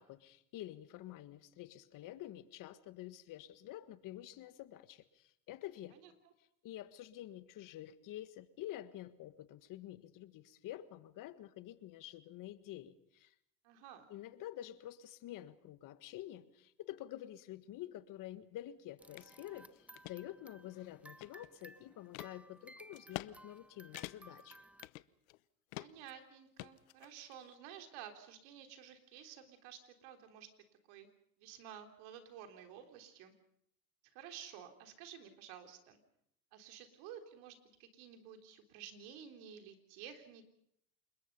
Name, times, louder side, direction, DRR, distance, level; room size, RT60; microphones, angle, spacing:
voice 1, 0.0-6.0 6.6-13.3 14.1-24.6, left 13 dB, 50° left, 12 dB, 1.7 m, -49 dB
voice 2, 13.6-14.1 25.7-30.5 30.9-31.1 31.4-33.3 34.0-36.0 36.5-40.4, right 9 dB, 65° right, 6 dB, 3.8 m, -52 dB
sound 1, 19.0-24.9, right 1 dB, 5° right, 0.8 m, -58 dB
sound 2, 19.2-19.3 19.7-20.2 20.7-21.6 22.1-22.3 22.9-23.3 23.6-23.7 23.9-24.4 24.8-25.4 25.7-26.1 26.6-27.4, left 21 dB, 75° left, 0.9 m, -47 dB
28.0 x 21.5 x 5.5 m, 0.73 s
supercardioid pair, 105°, 42 cm